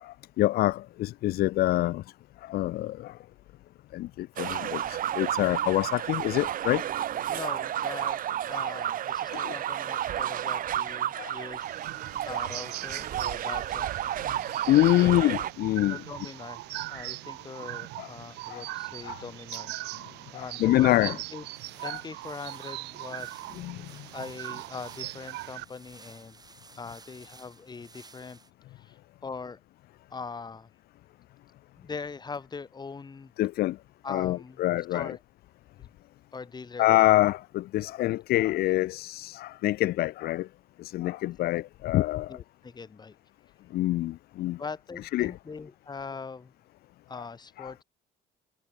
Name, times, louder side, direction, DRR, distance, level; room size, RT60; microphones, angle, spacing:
voice 1, 0.0-2.0 2.4-3.1 3.9-6.8 9.3-9.5 11.2-11.4 14.7-16.0 18.0-18.1 18.5-18.6 19.0-19.2 20.3-21.2 21.8-22.0 23.6-23.8 33.4-33.8 34.1-35.2 36.8-40.5 40.8-42.4 43.7-44.6 45.1-45.3 47.6-47.7, left 16 dB, 65° left, 0.5 m, -26 dB
sound 1, 4.4-15.5, right 11 dB, 55° right, 1.4 m, -31 dB
voice 2, 7.3-8.2 8.5-11.6 12.2-13.9 14.9-15.1 15.4-15.5 15.9-16.6 16.9-19.7 20.3-21.5 21.8-23.4 24.1-26.4 26.8-28.4 28.8-29.6 30.1-30.7 31.8-33.3 34.0-35.2 35.8-35.9 36.3-36.9 42.3-43.2 44.6-46.5 47.1-47.8, left 4 dB, 25° left, 2.1 m, -41 dB
sound 2, 11.6-25.6, right 20 dB, 85° right, 1.3 m, -40 dB
sound 3, 21.5-28.5, right 4 dB, 25° right, 5.6 m, -54 dB
cardioid pair, 110°, 17 cm